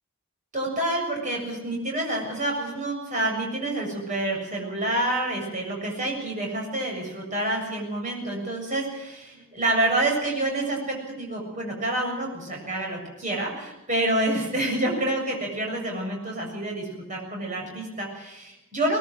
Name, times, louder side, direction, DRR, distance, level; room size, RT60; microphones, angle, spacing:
voice 1, 0.5-19.0, right 1 dB, 35° right, 0 dB, 7.3 m, -28 dB
21.0 x 20.5 x 7.7 m, 0.94 s
head